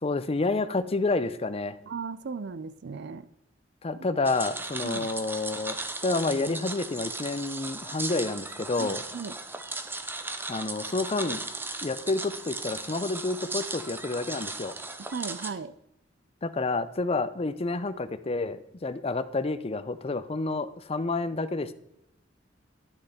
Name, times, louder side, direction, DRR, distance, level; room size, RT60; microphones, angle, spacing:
voice 1, 0.0-1.7 3.8-5.8 6.0-9.0 10.5-11.4 11.8-14.7 16.4-21.7, left 3 dB, 30° left, 13 dB, 0.6 m, -29 dB
voice 2, 1.9-3.3 4.0-4.1 4.8-5.1 8.8-9.4 15.1-15.7, right 5 dB, 60° right, 14 dB, 0.5 m, -36 dB
sound 1, 4.3-15.5, right 2 dB, 10° right, 0.7 m, -37 dB
12.0 x 6.5 x 4.2 m, 0.78 s
head